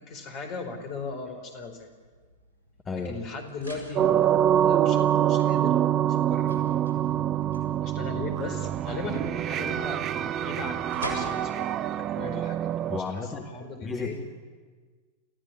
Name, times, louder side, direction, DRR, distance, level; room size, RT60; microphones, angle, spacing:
voice 1, 0.0-1.9 3.0-6.8 7.8-12.9 13.2-13.3 13.5-14.2, left 3 dB, 40° left, 6 dB, 4.8 m, -38 dB
sound 1, 0.8-13.7, equal, 70° right, 7.2 m, -47 dB
voice 2, 2.8-3.2 12.9-13.5 13.8-14.3, left 4 dB, 20° left, 2 dB, 2.3 m, -33 dB
sound 2, 4.0-13.0, right 11 dB, 30° right, 0.6 m, -25 dB
29.0 x 15.5 x 9.7 m, 1.5 s
figure-of-eight pair, 90°, 0 cm